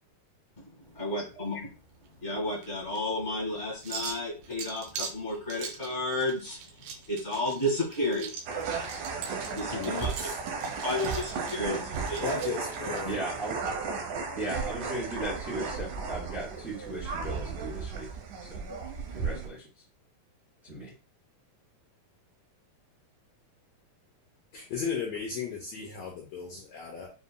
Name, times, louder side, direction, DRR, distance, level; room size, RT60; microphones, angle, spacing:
sound 1, 0.8-13.0, right 6 dB, 90° right, 2.7 m, -43 dB
voice 1, 0.9-1.6 2.2-6.6 7.1-8.3 9.5-10.1 10.8-12.3, left 1 dB, 25° left, -4 dB, 1.0 m, -32 dB
sound 2, 8.5-19.5, right 5 dB, 70° right, 2.0 m, -34 dB
voice 2, 9.7-10.4 12.2-13.1 24.5-27.1, left 6 dB, 75° left, -1 dB, 1.6 m, -35 dB
voice 3, 13.0-13.9 14.3-18.1 18.4-18.6 19.1-19.7 20.6-20.9, right 1 dB, 55° right, -5 dB, 0.8 m, -37 dB
6.9 x 2.7 x 2.2 m, 0.34 s
omnidirectional pair, 4.0 m